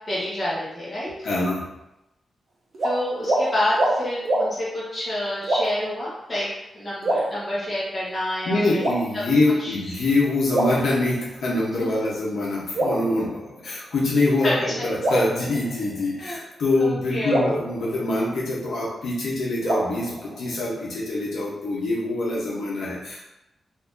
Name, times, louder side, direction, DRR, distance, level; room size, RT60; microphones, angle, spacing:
voice 1, 0.1-1.1 2.8-8.8 9.6-9.7 11.8-11.9 14.4-14.9 16.2-16.4 16.7-17.4, left 1 dB, 25° left, -8 dB, 1.2 m, -28 dB
voice 2, 1.2-1.6 8.4-23.3, left 2 dB, 80° left, -5 dB, 0.9 m, -24 dB
sound 1, 2.7-2.9 3.2-3.4 3.7-3.9 4.3-4.5 5.4-5.9 7.0-7.9 8.8-9.5 10.5-11.5 12.7-13.9 15.0-16.2 17.3-18.7 19.6-20.8, right 1 dB, 45° right, 0.9 m, -26 dB
2.8 x 2.6 x 3.6 m, 0.88 s
wide cardioid pair, 165°, 0 cm